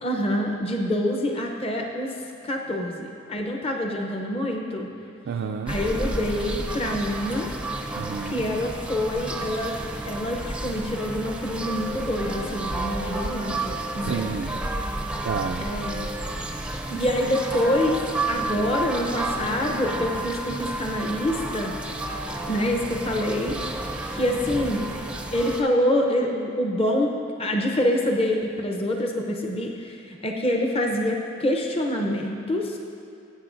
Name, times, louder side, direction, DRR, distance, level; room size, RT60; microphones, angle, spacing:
voice 1, 0.0-2.1 2.4-4.9 5.7-7.5 8.2-9.7 10.0-14.3 15.6-16.1 16.9-18.0 18.3-21.7 22.5-23.6 24.1-24.8 25.3-27.1 27.4-32.8, left 1 dB, 30° left, 1 dB, 0.7 m, -26 dB
voice 2, 5.3-5.8 8.0-8.5 14.0-14.5 15.2-15.7, right 6 dB, 60° right, 2 dB, 0.3 m, -30 dB
sound 1, 5.7-25.6, right 2 dB, 5° right, 0.5 m, -31 dB
19.5 x 8.4 x 2.6 m, 2.4 s
head